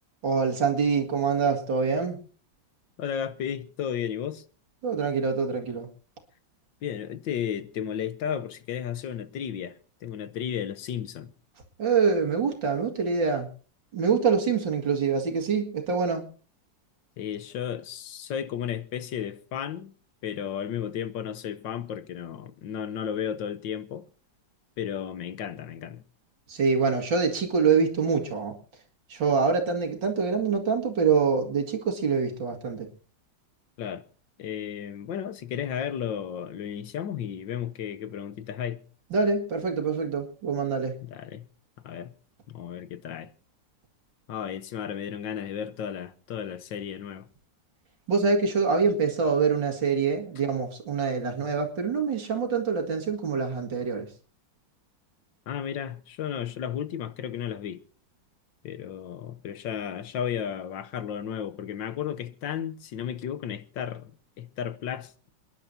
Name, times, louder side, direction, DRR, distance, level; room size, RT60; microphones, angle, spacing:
voice 1, 0.2-2.2 4.8-5.9 11.8-13.5 13.9-16.3 26.5-28.6 29.1-32.9 39.1-41.0 48.1-54.1, right 5 dB, 80° right, 2.8 m, -25 dB
voice 2, 3.0-4.4 6.8-11.3 17.2-19.9 20.2-24.0 24.8-26.0 33.8-34.0 34.4-38.8 41.0-41.5 41.8-42.1 42.5-43.3 44.3-47.2 55.5-57.8 58.6-64.1 64.4-65.3, left 9 dB, 85° left, 1.7 m, -33 dB
28.0 x 10.5 x 2.8 m
omnidirectional pair, 2.0 m